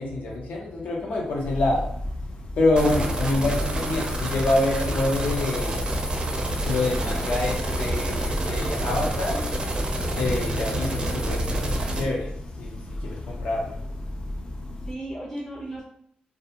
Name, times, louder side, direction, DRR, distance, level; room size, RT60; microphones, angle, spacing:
voice 1, 0.0-1.9 2.6-5.9 6.6-9.5 10.1-13.7, left 2 dB, 65° left, -1 dB, 0.7 m, -26 dB
sound 1, 0.8-14.9, left 1 dB, 35° left, 0.3 m, -34 dB
sound 2, 2.8-12.0, right 1 dB, 30° right, 0.4 m, -28 dB
voice 2, 3.3-4.0 14.9-15.8, right 1 dB, 20° left, -8 dB, 0.9 m, -36 dB
sound 3, 4.9-6.6, left 3 dB, 90° left, 1.1 m, -38 dB
2.3 x 2.2 x 2.8 m, 0.68 s
wide cardioid pair, 145°, 3 cm